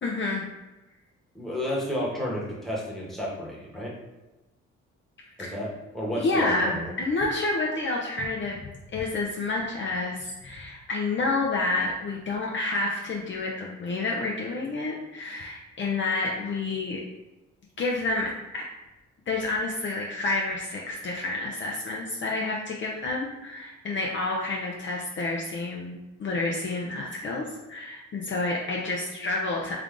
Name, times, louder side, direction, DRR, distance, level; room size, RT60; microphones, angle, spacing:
voice 1, 0.0-0.5 5.4-5.5 6.2-17.0 17.8-18.7 19.3-25.9 26.2-29.8, left 2 dB, 40° left, -2 dB, 0.6 m, -29 dB
voice 2, 1.3-3.9 5.4-6.9, equal, ahead, -4 dB, 1.1 m, -32 dB
3.4 x 2.4 x 3.6 m, 1.0 s
cardioid pair, 90°, 30 cm